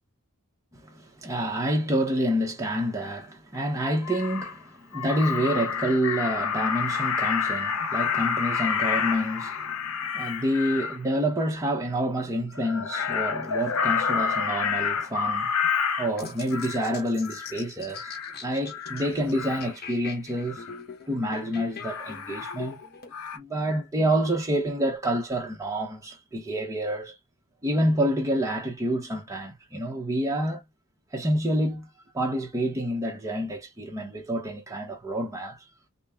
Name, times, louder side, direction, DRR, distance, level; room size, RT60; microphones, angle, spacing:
voice 1, 0.7-9.8 10.1-15.5 16.0-18.1 18.4-20.6 21.1-22.8 23.3-27.1 27.6-30.6 31.1-31.9 32.1-35.6, equal, 15° right, 0.9 m, -28 dB
Crow, 3.5-3.6 4.0-4.6 4.9-11.0 12.5-16.9 17.2-17.6 17.9-18.3 18.7-19.7 20.5-20.8 21.8-22.9 23.1-23.4, left 6 dB, 85° left, 0.6 m, -29 dB
sound 1, 16.2-23.1, left 5 dB, 45° left, 1.0 m, -43 dB
4.1 x 2.2 x 3.5 m
head